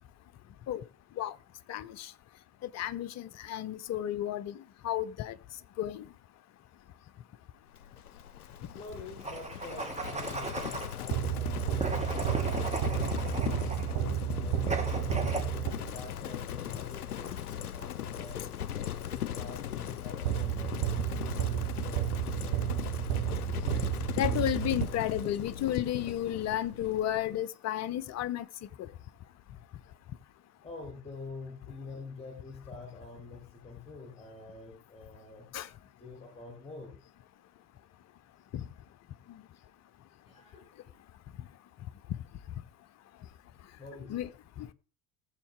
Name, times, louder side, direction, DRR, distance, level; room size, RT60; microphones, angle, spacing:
voice 1, 1.7-2.1 2.6-4.6 4.8-5.3 5.8-6.1 24.2-28.5 35.5-35.7 38.5-38.6 44.1-44.3 44.6-44.7, left 11 dB, 35° left, 0.8 m, -32 dB
Livestock farm animals working animals, 7.7-27.4, left 10 dB, 80° left, 0.6 m, -39 dB
voice 2, 8.7-14.7 15.0-18.4 18.7-22.9 30.6-35.5 36.0-37.0 40.2-41.0 43.8-44.2, left 3 dB, 15° left, 3.6 m, -47 dB
sound 1, 9.2-10.9 11.8-13.9 14.7-15.5, right 3 dB, 15° right, 2.1 m, -36 dB
sound 2, 11.1-16.2 20.2-25.5, right 13 dB, 50° right, 1.0 m, -32 dB
19.5 x 7.4 x 3.7 m
figure-of-eight pair, 65°, 44 cm